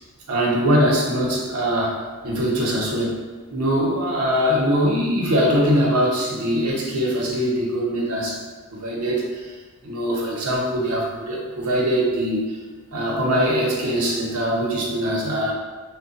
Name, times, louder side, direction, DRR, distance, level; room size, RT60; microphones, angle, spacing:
voice 1, 0.3-3.2 3.5-8.4 8.7-9.5 9.8-12.6 12.9-15.5, equal, 80° right, -2 dB, 0.8 m, -22 dB
3.3 x 2.1 x 3.9 m, 1.4 s
head